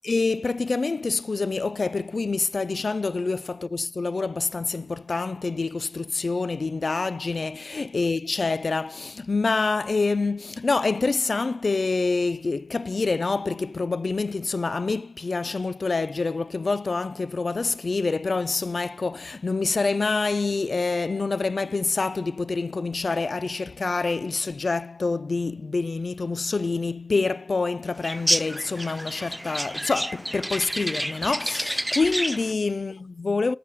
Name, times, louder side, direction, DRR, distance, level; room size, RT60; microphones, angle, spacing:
voice 1, 0.0-33.5, left 3 dB, 60° left, 0.4 m, -26 dB
sound 1, 28.0-32.5, equal, 10° right, 0.5 m, -29 dB
8.4 x 6.8 x 4.7 m
cardioid pair, 45°, 0 cm